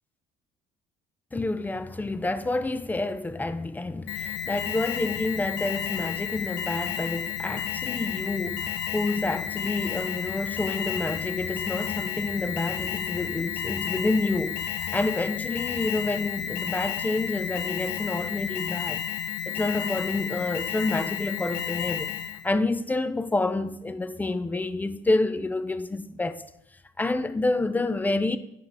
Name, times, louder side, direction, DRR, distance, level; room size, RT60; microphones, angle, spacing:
voice 1, 1.3-19.0 19.5-22.1 22.4-26.4 27.0-28.4, left 2 dB, 10° left, 0.5 m, -28 dB
Alarm, 4.1-22.5, left 9 dB, 80° left, 0.7 m, -32 dB
9.5 x 6.6 x 3.4 m
cardioid pair, 110°, 17 cm